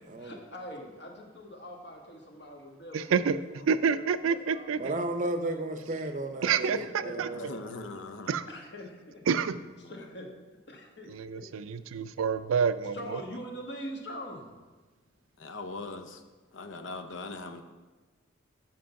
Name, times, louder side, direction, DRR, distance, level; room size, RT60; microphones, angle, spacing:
voice 1, 0.0-4.8 6.7-7.1 7.4-7.8 8.2-9.2 9.9-10.3 10.7-11.8 12.9-14.5, equal, 55° left, 1 dB, 1.3 m, -43 dB
voice 2, 2.9-3.4 3.7-4.9 6.4-6.8 7.2-7.3 8.3-8.4 9.3-9.6 11.1-13.2, right 6 dB, 90° right, 13 dB, 0.4 m, -28 dB
voice 3, 4.8-6.7 7.0-7.4, right 1 dB, 40° right, 7 dB, 0.6 m, -33 dB
voice 4, 7.3-8.3 15.4-16.2 16.5-17.6, left 3 dB, 70° left, 7 dB, 0.7 m, -40 dB
7.6 x 5.4 x 5.7 m, 1.3 s
head